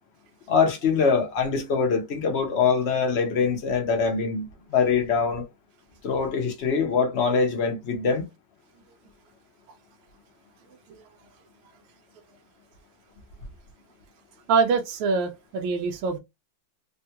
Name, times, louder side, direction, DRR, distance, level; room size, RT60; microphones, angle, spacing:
voice 1, 0.5-5.4 6.0-8.3, left 5 dB, 65° left, 0.6 m, -23 dB
voice 2, 14.5-16.2, right 5 dB, 90° right, 1.4 m, -24 dB
3.6 x 2.3 x 2.8 m
omnidirectional pair, 2.2 m